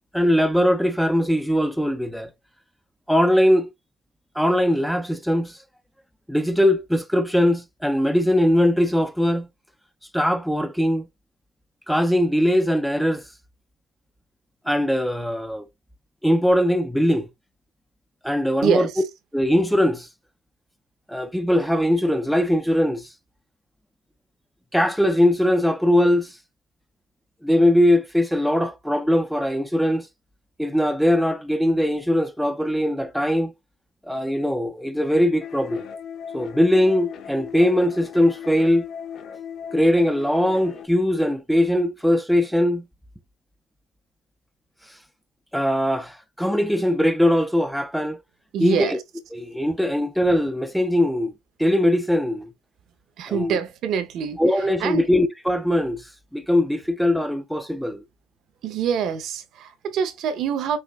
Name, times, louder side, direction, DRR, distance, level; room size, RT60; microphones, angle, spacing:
voice 1, 0.1-2.3 3.1-3.7 4.4-5.6 6.3-9.5 10.1-11.1 11.9-13.2 14.7-15.7 16.2-17.3 18.2-18.9 19.3-20.1 21.1-23.1 24.7-26.4 27.4-30.1 30.6-33.5 34.1-35.9 36.3-38.9 39.7-42.8 44.9-45.0 45.5-48.2 48.6-49.0 49.3-51.3 51.6-52.5 53.3-53.6 54.4-58.0, equal, ahead, 0.3 m, -21 dB
voice 2, 18.6-19.0 48.5-49.0 53.2-55.1 58.6-60.8, right 7 dB, 50° right, 0.7 m, -25 dB
sound 1, 35.4-40.9, left 7 dB, 45° left, 0.7 m, -37 dB
5.6 x 2.8 x 2.3 m
cardioid pair, 140°, 0 cm